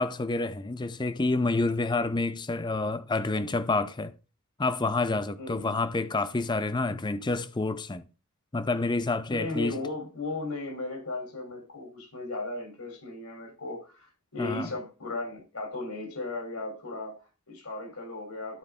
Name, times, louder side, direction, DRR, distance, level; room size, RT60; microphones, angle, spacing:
voice 1, 0.0-4.1 4.6-8.0 8.5-9.8 14.4-14.7, left 3 dB, 20° left, 0.5 m, -28 dB
voice 2, 5.4-5.7 6.9-7.0 9.3-18.6, left 2 dB, 80° left, 3.4 m, -36 dB
12.0 x 4.7 x 3.6 m
head